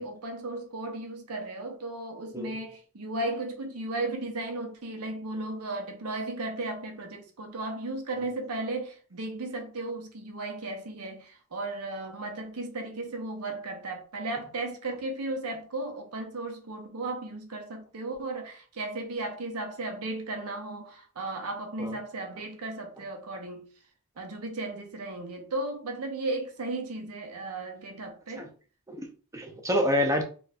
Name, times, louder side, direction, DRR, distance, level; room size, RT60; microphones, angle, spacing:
voice 1, 0.0-23.7 24.2-28.5, right 2 dB, 85° right, 0.7 m, -35 dB
voice 2, 28.9-30.2, equal, 15° right, 0.4 m, -28 dB
2.4 x 2.3 x 4.0 m
head